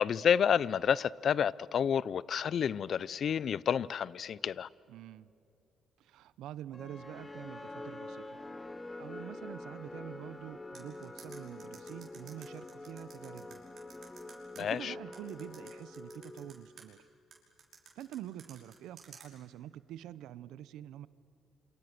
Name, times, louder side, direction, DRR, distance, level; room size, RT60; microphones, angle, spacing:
voice 1, 0.0-4.7 14.6-14.9, left 8 dB, 60° left, 0.5 m, -29 dB
voice 2, 4.9-5.3 6.0-8.4 9.0-13.6 14.6-17.0 17.9-21.1, right 12 dB, 90° right, 0.7 m, -46 dB
sound 1, 6.7-16.9, left 2 dB, 20° left, 1.4 m, -46 dB
sound 2, 10.7-14.6 15.1-16.8 17.3-19.3, right 6 dB, 55° right, 5.9 m, -53 dB
27.5 x 26.5 x 6.7 m
cardioid pair, 90°, 0 cm